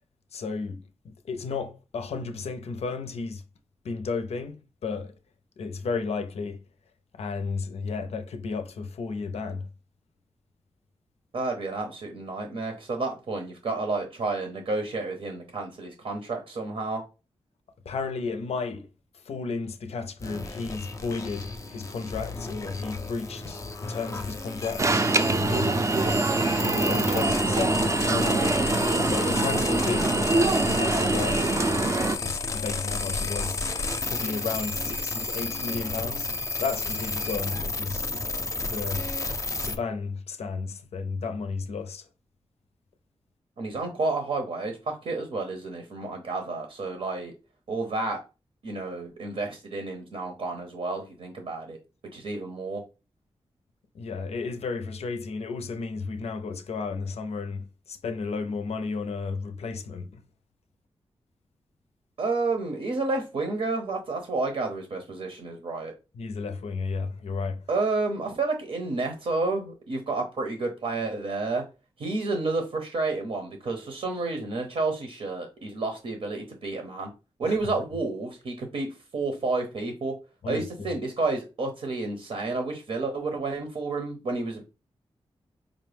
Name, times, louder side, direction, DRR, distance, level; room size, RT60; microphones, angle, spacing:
voice 1, 0.3-3.4 3.8-5.1 5.6-6.6 7.1-9.7 17.9-18.9 19.3-25.8 26.6-28.5 29.1-30.2 30.7-31.4 32.2-33.6 34.0-36.3 36.6-38.3 38.7-39.1 39.7-42.1 53.9-60.2 66.1-67.6 77.4-77.7 80.4-80.9, left 4 dB, 90° left, 0.5 m, -33 dB
voice 2, 11.3-17.0 43.6-47.3 47.7-48.2 48.6-51.8 52.1-52.8 62.2-65.9 67.7-71.6 72.0-77.1 77.4-80.1 80.5-84.6, right 3 dB, 75° right, 0.8 m, -30 dB
sound 1, 20.2-39.8, left 3 dB, 30° left, 0.5 m, -32 dB
Alarm, 24.8-32.1, right 2 dB, 30° right, 0.4 m, -24 dB
5.0 x 2.1 x 3.3 m
wide cardioid pair, 90°, 10 cm